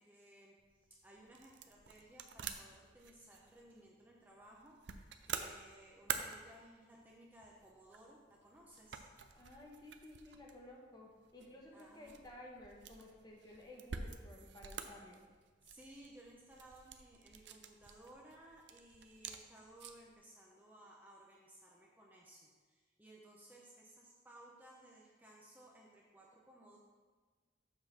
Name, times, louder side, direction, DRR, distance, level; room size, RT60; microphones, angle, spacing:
voice 1, 0.0-9.0 11.7-12.2 15.6-26.8, right 1 dB, 10° right, -3 dB, 0.7 m, -59 dB
sound 1, 0.6-20.1, right 7 dB, 65° right, 0.5 m, -49 dB
voice 2, 9.3-15.2, left 1 dB, 20° left, -2 dB, 1.1 m, -55 dB
7.3 x 3.8 x 6.5 m, 1.4 s
head